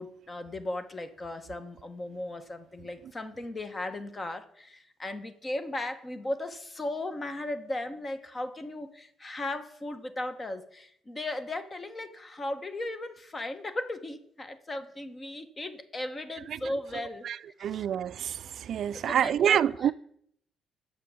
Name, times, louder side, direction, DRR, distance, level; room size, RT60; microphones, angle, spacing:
voice 1, 0.0-17.3 17.6-17.8 18.9-19.9, left 1 dB, 30° left, 1.0 m, -36 dB
voice 2, 17.2-19.9, right 9 dB, 65° right, 0.3 m, -27 dB
7.5 x 6.1 x 6.9 m
cardioid pair, 90°, 0 cm